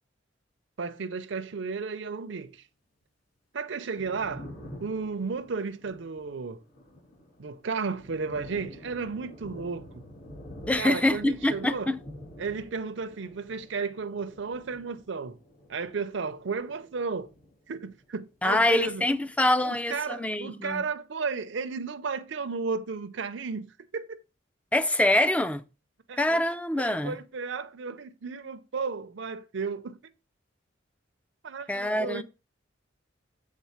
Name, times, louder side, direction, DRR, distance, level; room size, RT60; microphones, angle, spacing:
voice 1, 0.8-2.6 3.5-4.5 4.8-6.6 7.4-10.0 10.8-11.9 12.4-15.4 15.7-17.3 17.7-19.0 19.6-23.7 23.9-24.2 26.1-26.4 26.8-30.0 31.4-32.2, right 4 dB, 70° right, 0.5 m, -33 dB
Thunder, 3.7-18.2 18.4-19.7, left 1 dB, 50° left, 3.9 m, -48 dB
voice 2, 10.7-12.0 18.4-20.8 24.7-25.6 26.2-27.2 31.7-32.2, left 1 dB, 5° left, 0.4 m, -25 dB
7.4 x 3.7 x 5.7 m
head